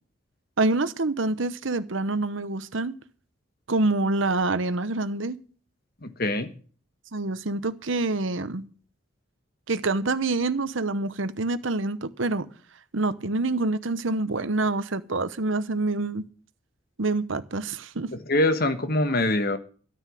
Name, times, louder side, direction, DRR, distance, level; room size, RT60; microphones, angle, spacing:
voice 1, 0.6-3.0 3.7-5.4 7.1-8.7 9.7-12.5 12.9-16.2 17.0-18.1, right 2 dB, 70° right, 1.0 m, -26 dB
voice 2, 6.0-6.5 18.1-19.6, left 1 dB, 50° left, 1.3 m, -24 dB
13.5 x 8.9 x 6.3 m
head